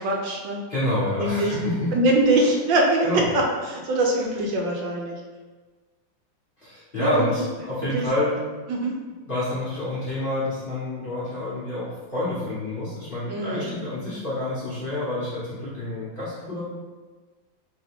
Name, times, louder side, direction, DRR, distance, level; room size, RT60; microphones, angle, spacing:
voice 1, 0.0-0.6 1.1-1.5 1.9-5.2 7.0-7.4 7.8-8.0 8.7-8.9 13.3-13.7, right 1 dB, 75° right, 0 dB, 1.3 m, -23 dB
voice 2, 0.7-1.9 3.0-3.2 6.6-8.4 9.3-16.6, left 1 dB, 40° left, -10 dB, 0.8 m, -28 dB
3.4 x 3.3 x 3.5 m, 1.3 s
omnidirectional pair, 2.1 m